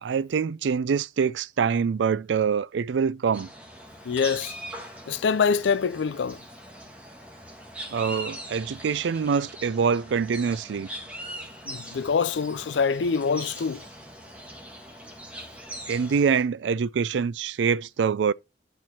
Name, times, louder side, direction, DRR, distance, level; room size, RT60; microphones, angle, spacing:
voice 1, 0.0-3.5 7.9-10.9 15.9-18.3, right 6 dB, 85° right, 0.4 m, -25 dB
sound 1, 3.3-16.4, right 1 dB, 10° right, 1.5 m, -41 dB
voice 2, 4.1-4.5 5.1-6.4 11.7-13.8, left 5 dB, 90° left, 0.4 m, -25 dB
9.1 x 4.5 x 4.2 m
head